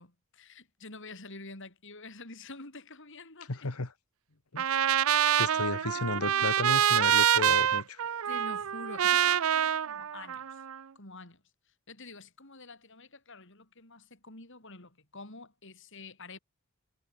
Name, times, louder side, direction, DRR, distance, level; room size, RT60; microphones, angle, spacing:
voice 1, 0.0-3.7 5.1-6.5 8.2-10.6 11.0-11.4 11.9-16.4, left 3 dB, 60° left, 5.6 m, -48 dB
voice 2, 3.5-3.9 4.5-4.7 5.4-8.0, left 3 dB, 85° left, 1.6 m, -33 dB
Trumpet, 4.6-10.8, right 10 dB, 65° right, 0.5 m, -26 dB
head